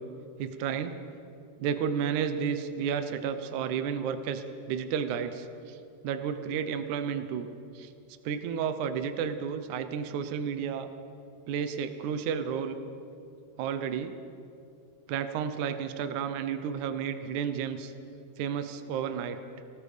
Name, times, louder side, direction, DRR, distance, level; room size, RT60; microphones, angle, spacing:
voice 1, 0.4-0.9 1.6-5.8 6.0-7.5 7.7-7.9 8.2-10.9 11.5-12.8 13.6-14.1 15.1-17.9 18.4-19.4, right 7 dB, 90° right, 9 dB, 1.7 m, -32 dB
28.0 x 18.5 x 5.2 m, 2.6 s
omnidirectional pair, 4.9 m